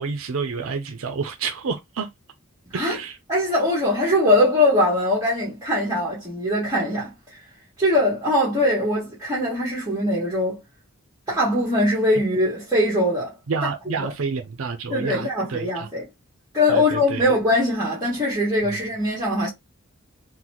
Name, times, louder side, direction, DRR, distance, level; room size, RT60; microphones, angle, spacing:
voice 1, 0.0-2.1 2.7-3.2 13.5-15.9 16.7-17.3 18.6-18.8, right 5 dB, 75° right, 0.5 m, -29 dB
voice 2, 3.3-7.4 7.8-10.6 11.3-13.3 13.6-13.7 14.0-14.1 14.9-16.1 16.5-19.5, left 1 dB, 15° right, 1.6 m, -21 dB
3.9 x 2.2 x 2.9 m
head